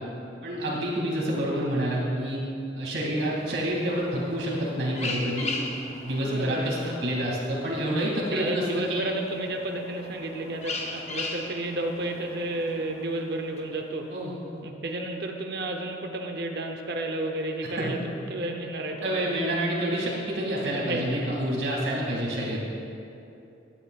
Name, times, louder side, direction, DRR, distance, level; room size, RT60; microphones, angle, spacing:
voice 1, 0.4-2.4 2.7-5.5 6.0-9.0 14.1-14.3 17.8-17.9 19.0-22.6, right 1 dB, 80° right, -4 dB, 2.4 m, -28 dB
sound 1, 3.2-14.1, left 2 dB, 35° left, 0.8 m, -39 dB
voice 2, 6.2-6.9 8.3-14.1 14.6-19.4 20.7-21.2, right 1 dB, 55° right, 3 dB, 0.8 m, -32 dB
15.0 x 10.0 x 2.4 m, 2.7 s
head